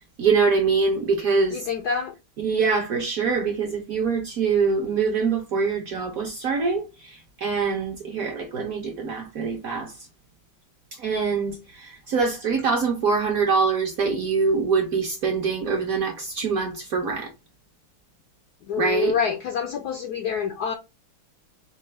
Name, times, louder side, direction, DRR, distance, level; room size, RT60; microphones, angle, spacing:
voice 1, 0.2-1.6 2.4-9.9 11.0-17.3 18.8-19.1, right 5 dB, 60° right, 0.9 m, -24 dB
voice 2, 1.5-2.1 18.7-20.7, left 7 dB, 75° left, 0.9 m, -27 dB
5.5 x 2.3 x 4.2 m
omnidirectional pair, 2.3 m